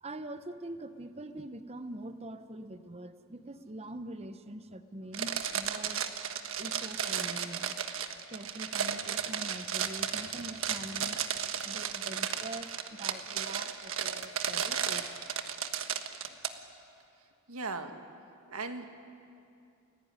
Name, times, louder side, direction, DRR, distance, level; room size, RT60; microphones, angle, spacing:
voice 1, 0.0-6.1 6.6-7.8 8.3-11.4 11.6-15.5, right 1 dB, 30° right, 11 dB, 0.9 m, -44 dB
sound 1, 5.1-16.5, right 8 dB, 65° right, 1.4 m, -34 dB
voice 2, 17.5-18.0 18.5-18.9, right 3 dB, 85° right, 7 dB, 1.9 m, -38 dB
29.5 x 20.0 x 9.7 m, 2.6 s
head